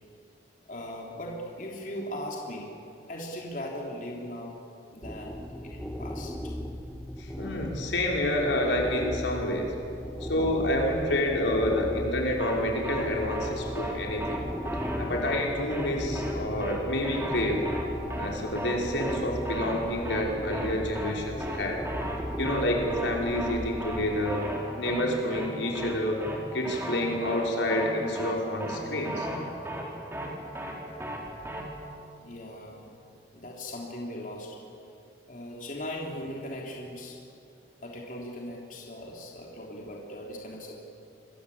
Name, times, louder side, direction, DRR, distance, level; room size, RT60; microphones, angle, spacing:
voice 1, 0.7-2.7 3.1-4.6 4.9-6.6 10.1-10.3 32.2-32.9 33.3-34.6 35.3-37.2 37.8-40.8, left 1 dB, 45° left, -1 dB, 3.6 m, -39 dB
sound 1, 5.0-24.3, equal, 5° left, 1.7 m, -37 dB
voice 2, 7.2-9.7 10.2-14.4 15.0-17.6 18.2-21.8 22.4-24.4 24.8-26.3 26.5-29.3, left 1 dB, 90° left, -1 dB, 5.4 m, -28 dB
sound 2, 12.4-12.6 12.8-13.0 13.3-13.5 13.8-13.9 14.2-14.4 14.7-15.0 15.3-15.4 15.7-15.9 16.2-16.3 16.6-16.8 17.0-17.4 17.7-17.8 18.1-18.3 18.6-18.7 19.0-19.2 19.5-19.8 20.1-20.2 20.5-20.7 21.0-21.1 21.4-21.6 21.9-22.2 22.4-22.6 22.9-23.1 23.4-23.5 23.8-24.0 24.3-24.6 24.9-25.0 25.3-25.5 25.8-25.9 26.2-26.4 26.6-27.0 27.3-27.4 27.7-27.9 28.2-28.3 28.6-28.8 29.1-29.4 29.7-29.8 30.1-30.3 30.6-30.7 31.0-31.2 31.5-31.6, right 1 dB, 15° right, 4.2 m, -35 dB
27.0 x 22.0 x 8.6 m, 2.5 s
head